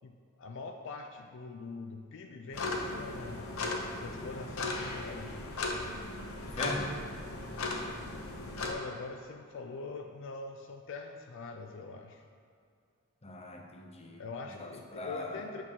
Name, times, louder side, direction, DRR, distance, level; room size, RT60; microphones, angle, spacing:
voice 1, 0.0-3.5 4.0-5.3 8.6-12.2 14.2-15.6, left 4 dB, 60° left, 4 dB, 0.4 m, -43 dB
sound 1, 2.5-8.7, left 2 dB, 80° left, 0.9 m, -37 dB
voice 2, 6.4-7.0 13.2-14.2 14.5-15.5, left 2 dB, 30° left, 2 dB, 0.8 m, -40 dB
8.8 x 6.0 x 3.7 m, 2.3 s
head